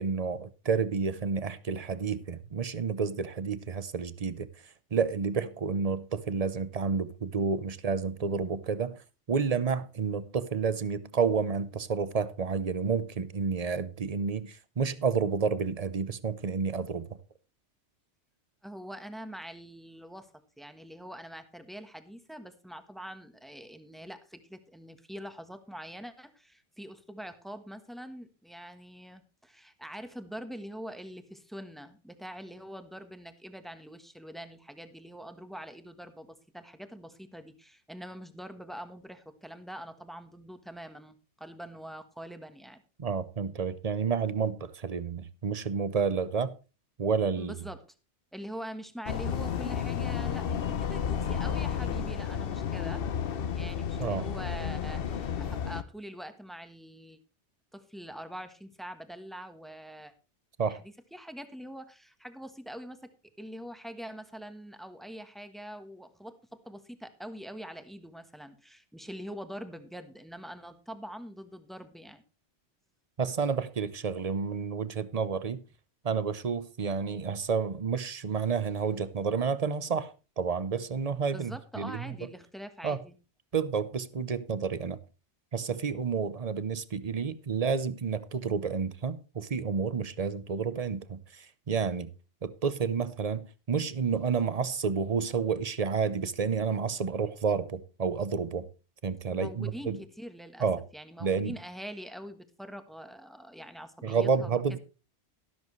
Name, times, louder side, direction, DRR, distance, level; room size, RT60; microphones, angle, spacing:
voice 1, 0.0-4.5 4.9-9.0 9.3-17.1 43.0-46.5 47.0-47.6 54.0-54.3 60.6-60.8 73.2-75.6 76.0-80.1 80.4-82.0 82.8-83.0 83.5-85.0 85.5-92.1 92.4-98.7 99.0-100.0 100.6-100.8 101.2-101.5 104.0-104.8, right 5 dB, 35° right, 0.8 m, -30 dB
voice 2, 18.6-20.3 20.6-42.8 47.4-47.8 48.3-53.0 53.5-57.2 57.7-60.1 60.7-63.1 63.4-72.2 81.3-83.2 99.3-100.7 100.9-104.8, equal, ahead, 1.2 m, -44 dB
sound 1, 49.1-55.8, left 7 dB, 60° left, 0.9 m, -32 dB
13.0 x 12.5 x 3.2 m
omnidirectional pair, 1.2 m